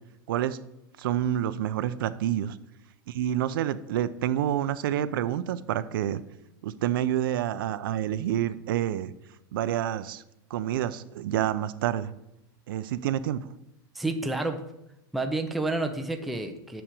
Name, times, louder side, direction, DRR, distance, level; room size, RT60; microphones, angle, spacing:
voice 1, 0.3-0.6 1.0-2.6 3.1-6.2 6.6-9.1 9.5-10.2 10.5-12.1 12.7-13.5, right 11 dB, 70° right, 14 dB, 0.5 m, -28 dB
voice 2, 13.9-14.6 15.1-16.8, right 2 dB, ahead, 5 dB, 0.4 m, -29 dB
6.3 x 5.8 x 6.9 m, 0.85 s
supercardioid pair, 175°, 12 cm